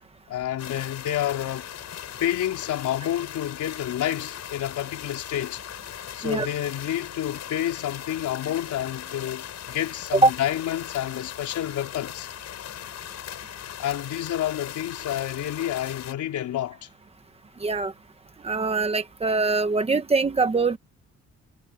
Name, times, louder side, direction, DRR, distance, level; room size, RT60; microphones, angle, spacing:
voice 1, 0.3-1.7 2.2-5.6 6.1-12.3 13.8-16.9, left 11 dB, 85° left, 4.6 m, -29 dB
sound 1, 0.6-16.1, left 10 dB, 65° left, 6.5 m, -39 dB
voice 2, 17.6-17.9 18.4-20.8, right 3 dB, 20° right, 1.3 m, -22 dB
cardioid pair, 170°, 29 cm